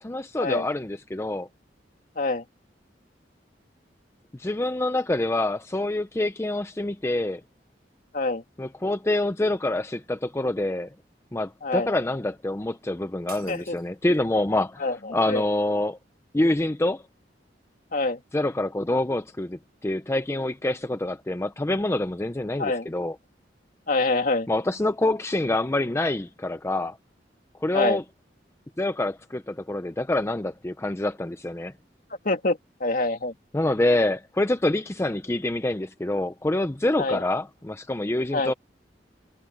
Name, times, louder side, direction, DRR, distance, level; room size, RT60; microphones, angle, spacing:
voice 1, 0.0-1.5 4.3-7.4 8.6-10.9 11.3-14.8 15.1-16.0 16.3-17.0 18.3-23.2 24.5-27.0 27.6-28.0 28.8-31.7 33.5-38.5, left 1 dB, 15° left, 0.6 m, -26 dB
sound 1, 13.3-14.5, right 9 dB, 60° right, 7.0 m, -48 dB
voice 2, 14.8-15.4 17.9-18.2 22.6-22.9 23.9-24.5 27.7-28.0 32.2-33.3 37.0-37.2 38.3-38.5, left 2 dB, 50° left, 2.4 m, -26 dB
head